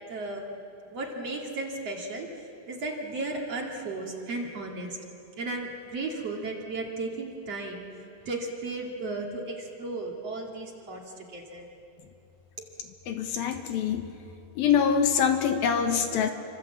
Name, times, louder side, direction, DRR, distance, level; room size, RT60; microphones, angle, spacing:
voice 1, 0.1-0.6 0.8-5.0 5.4-11.7, right 2 dB, 45° right, -1 dB, 3.1 m, -35 dB
voice 2, 13.1-14.1 14.6-16.3, left 7 dB, 70° left, 6 dB, 3.0 m, -24 dB
28.0 x 25.0 x 8.1 m, 2.8 s
omnidirectional pair, 4.5 m